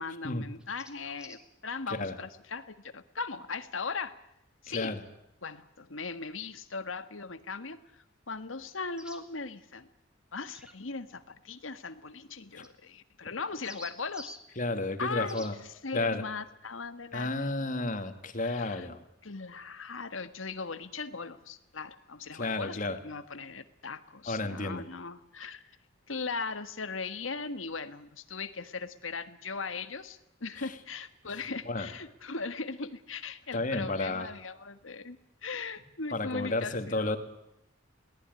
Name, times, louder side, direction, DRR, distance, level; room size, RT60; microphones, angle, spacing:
voice 1, 0.0-4.1 4.6-5.0 5.4-9.9 10.3-14.6 15.0-15.4 15.8-17.5 18.4-18.9 19.2-25.8 26.1-37.2, left 4 dB, 90° left, 10 dB, 1.6 m, -39 dB
sound 1, 0.6-1.4 4.6-4.7 9.0-9.2 10.5-10.8 12.6-12.7 13.4-14.4 15.2-15.5, equal, 5° right, 2.4 m, -48 dB
voice 2, 4.7-5.0 12.5-12.6 14.6-15.5 15.9-16.2 17.1-19.0 22.3-23.0 24.3-24.8 30.6-30.7 31.7-31.9 33.5-34.3 36.1-37.2, left 2 dB, 40° left, 7 dB, 2.5 m, -32 dB
22.0 x 18.0 x 9.7 m, 0.85 s
head